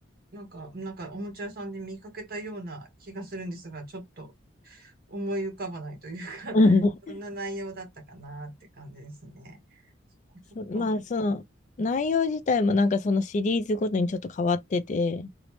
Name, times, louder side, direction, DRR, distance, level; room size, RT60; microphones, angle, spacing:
voice 1, 0.3-4.3 4.6-6.7 7.1-9.9 10.3-10.4 10.7-11.0, right 1 dB, 50° right, 1.1 m, -38 dB
voice 2, 6.5-7.2 10.6-11.4 11.8-15.3, left 3 dB, 40° left, 0.3 m, -24 dB
3.0 x 2.0 x 3.0 m
head